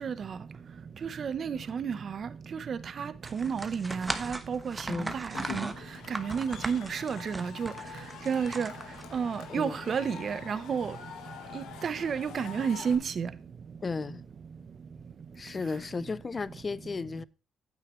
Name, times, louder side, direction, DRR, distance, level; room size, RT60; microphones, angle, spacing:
voice 1, 0.0-0.4 1.0-2.3 2.7-5.7 6.1-7.7 8.3-8.7 9.1-10.9 11.5-13.3, right 6 dB, 50° right, 0.8 m, -31 dB
sound 1, 3.2-9.4, right 2 dB, 15° right, 1.0 m, -38 dB
Cheering / Crowd, 5.3-13.0, left 8 dB, 90° left, 1.5 m, -45 dB
voice 2, 9.5-9.9 13.8-14.2 15.4-17.2, left 4 dB, 30° left, 0.4 m, -34 dB
9.1 x 8.3 x 3.1 m
cardioid pair, 90°, 0 cm